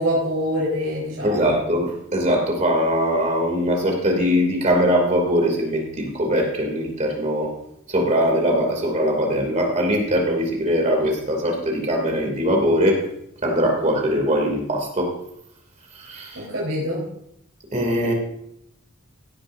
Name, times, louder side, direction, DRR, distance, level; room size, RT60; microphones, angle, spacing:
voice 1, 0.0-1.6 16.3-17.0 18.0-18.1, equal, 70° right, -5 dB, 4.1 m, -25 dB
voice 2, 1.2-7.5 7.9-13.0 13.4-15.1 16.1-16.4 17.7-18.1, equal, 35° right, 1 dB, 2.8 m, -21 dB
17.0 x 10.5 x 2.7 m, 0.74 s
head